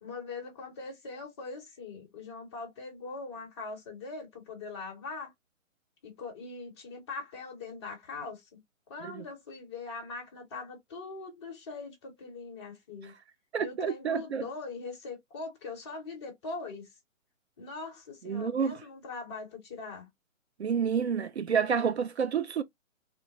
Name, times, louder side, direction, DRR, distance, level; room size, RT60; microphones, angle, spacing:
voice 1, 0.0-5.3 6.0-8.6 8.9-13.1 13.6-16.9 17.6-20.1, left 4 dB, 20° left, 0.9 m, -41 dB
voice 2, 13.5-14.5 18.2-18.8 20.6-22.6, right 7 dB, 55° right, 0.4 m, -29 dB
2.8 x 2.1 x 2.8 m
figure-of-eight pair, 150°, 40 cm